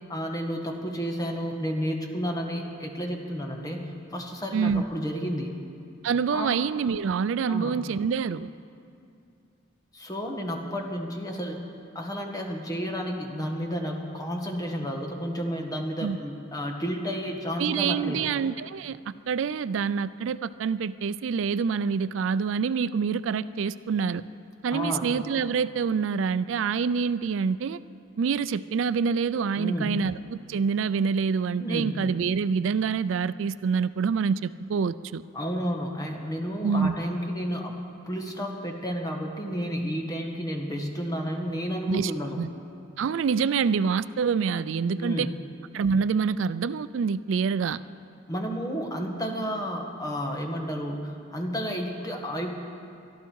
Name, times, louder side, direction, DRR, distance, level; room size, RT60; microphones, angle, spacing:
voice 1, 0.1-5.5 6.3-6.5 7.5-7.8 9.9-11.6 11.9-18.3 24.7-25.1 29.6-29.9 31.6-32.1 35.3-37.7 38.1-42.4 45.0-45.4 48.3-52.5, equal, 20° left, 2 dB, 1.5 m, -31 dB
voice 2, 4.5-4.8 6.0-8.5 16.0-16.2 17.6-24.2 24.6-27.8 28.2-35.2 36.6-37.0 41.9-42.1 42.4-42.5 43.0-45.3 45.7-47.8, right 6 dB, 75° right, 15 dB, 0.4 m, -26 dB
24.0 x 12.5 x 4.7 m, 2.5 s
head